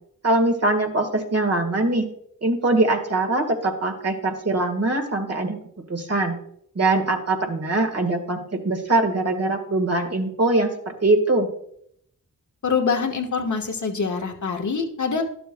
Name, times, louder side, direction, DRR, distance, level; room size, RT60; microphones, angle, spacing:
voice 1, 0.2-2.1 2.4-5.6 5.9-6.3 6.7-11.5, right 2 dB, 45° right, 4 dB, 1.6 m, -22 dB
voice 2, 12.6-15.2, left 5 dB, 55° left, 2 dB, 1.3 m, -25 dB
11.5 x 6.9 x 2.2 m, 0.70 s
cardioid pair, 45°, 36 cm